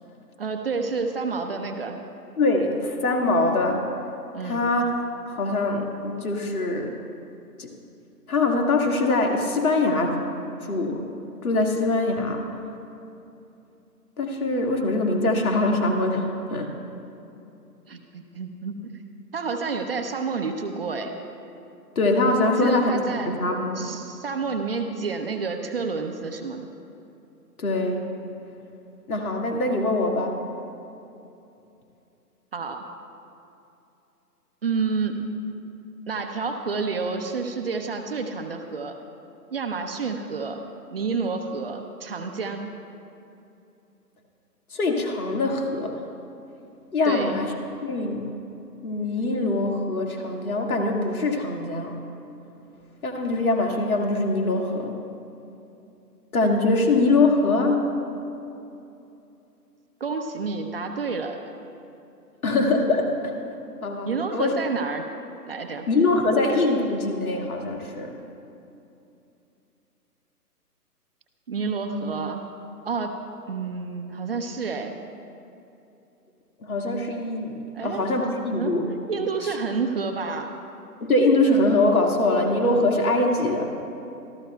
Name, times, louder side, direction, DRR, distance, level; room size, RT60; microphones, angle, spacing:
voice 1, 0.4-2.0 4.3-4.7 17.9-18.9 19.3-21.1 22.6-23.3 23.7-26.6 32.5-32.9 34.6-35.2 36.1-38.9 39.5-40.6 40.9-42.7 47.0-47.4 60.0-61.4 64.0-65.0 65.5-65.9 71.5-72.4 72.8-73.2 73.5-75.0 77.7-78.3 78.5-78.8 79.1-80.5, right 4 dB, 35° right, 4 dB, 0.7 m, -29 dB
voice 2, 2.4-3.9 4.4-5.0 5.3-6.9 7.6-7.7 8.3-10.2 10.6-11.0 11.4-12.5 14.2-16.7 22.0-22.9 23.3-23.9 27.6-28.0 29.1-30.4 44.7-45.9 46.9-47.5 47.8-48.3 48.8-51.9 53.0-55.0 56.3-57.8 62.4-63.4 63.8-64.5 65.9-68.1 71.9-72.1 76.6-78.9 79.4-79.5 81.0-83.7, left 2 dB, 60° left, 1 dB, 2.1 m, -23 dB
25.0 x 14.0 x 2.3 m, 2.8 s
figure-of-eight pair, 145°, 48 cm